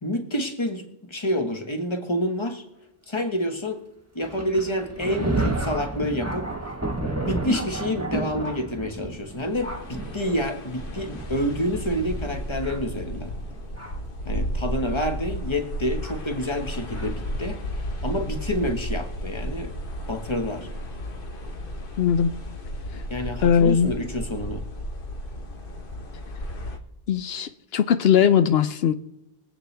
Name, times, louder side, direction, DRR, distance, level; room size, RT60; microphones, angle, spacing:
voice 1, 0.0-2.6 3.1-3.8 4.1-6.5 7.2-13.3 14.2-17.6 18.0-19.7 20.1-20.7 22.9-24.6, equal, 30° left, 1.4 m, -28 dB
Thunder, 4.2-14.1 14.9-15.0 16.0-16.2 16.9-17.1, right 2 dB, 15° right, 1.4 m, -32 dB
sound 1, 9.1-26.8, equal, 60° left, 1.4 m, -33 dB
voice 2, 22.0-22.3 22.9-23.0 23.4-23.9 27.1-28.9, left 8 dB, 80° left, 0.8 m, -20 dB
23.0 x 8.3 x 3.4 m
omnidirectional pair, 1.0 m